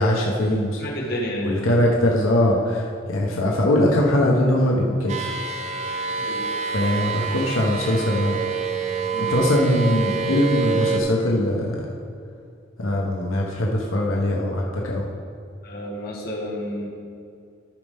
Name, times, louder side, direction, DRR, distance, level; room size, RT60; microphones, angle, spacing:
voice 1, 0.0-0.8 1.4-5.3 6.7-8.4 9.3-11.8 12.8-15.0, left 1 dB, 90° left, -2 dB, 1.1 m, -21 dB
voice 2, 0.8-1.6 6.1-6.5 9.1-9.3 15.6-16.9, equal, 50° left, -3 dB, 1.6 m, -30 dB
sound 1, 5.1-11.0, right 5 dB, 35° right, 0.7 m, -27 dB
13.5 x 5.5 x 3.6 m, 2.4 s
head